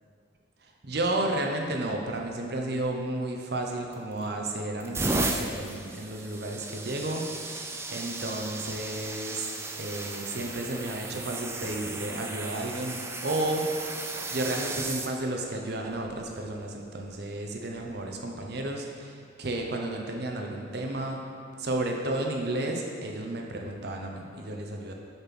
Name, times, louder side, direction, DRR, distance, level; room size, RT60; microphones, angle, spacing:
voice 1, 0.6-9.5 9.8-13.7 14.3-21.2 21.6-24.9, right 1 dB, 55° right, 2 dB, 0.8 m, -32 dB
sound 1, 3.9-4.3 4.8-15.1 16.0-16.2 17.8-17.9, right 2 dB, 15° right, 0.3 m, -35 dB
6.6 x 4.3 x 6.0 m, 2.3 s
head